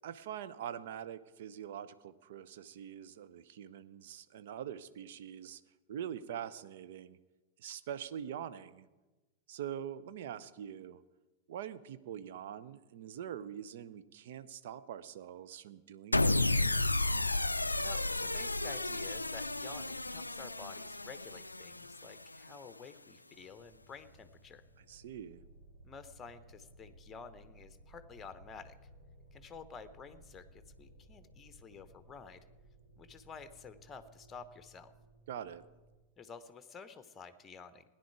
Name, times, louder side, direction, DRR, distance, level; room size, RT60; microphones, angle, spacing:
voice 1, 0.0-5.6 5.9-7.2 7.6-8.9 9.5-11.0 11.5-16.4 24.9-25.4 35.3-35.6, right 9 dB, 55° right, 13 dB, 0.6 m, -44 dB
sound 1, 16.1-22.5, left 2 dB, 85° left, 0.3 m, -32 dB
voice 2, 17.8-24.6 25.8-28.7 29.3-32.4 33.0-34.9 36.2-37.8, left 5 dB, 20° left, 11 dB, 0.9 m, -51 dB
sound 2, 23.3-35.9, right 1 dB, 80° right, 2.7 m, -59 dB
16.5 x 10.0 x 4.7 m, 1.2 s
figure-of-eight pair, 90°, 0 cm